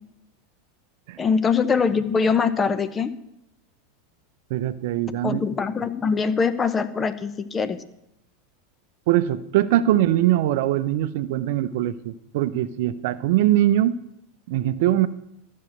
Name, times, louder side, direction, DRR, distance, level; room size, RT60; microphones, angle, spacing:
voice 1, 1.2-3.1 5.2-7.8, left 5 dB, 25° left, 12 dB, 1.0 m, -23 dB
voice 2, 4.5-5.4 9.1-14.0 14.5-15.1, right 13 dB, 60° right, 15 dB, 0.6 m, -22 dB
13.0 x 6.4 x 7.8 m, 0.81 s
figure-of-eight pair, 85°, 0 cm